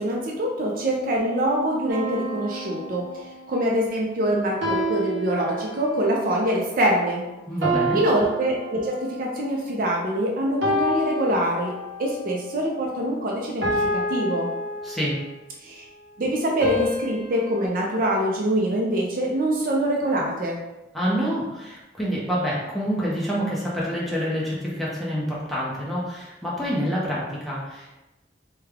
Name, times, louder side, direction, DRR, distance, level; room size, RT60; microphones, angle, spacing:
voice 1, 0.0-3.1 3.5-7.2 7.9-11.7 12.0-14.5 15.6-15.9 16.2-20.6, right 1 dB, 50° right, -1 dB, 0.5 m, -24 dB
sound 1, 1.9-3.5 4.6-6.1 7.6-9.3 10.6-12.1 13.6-15.4 16.6-17.7, equal, 85° right, 0.9 m, -29 dB
voice 2, 7.5-8.0 14.8-15.2 20.9-27.9, equal, ahead, -7 dB, 0.8 m, -27 dB
3.3 x 2.2 x 3.5 m, 1.0 s
head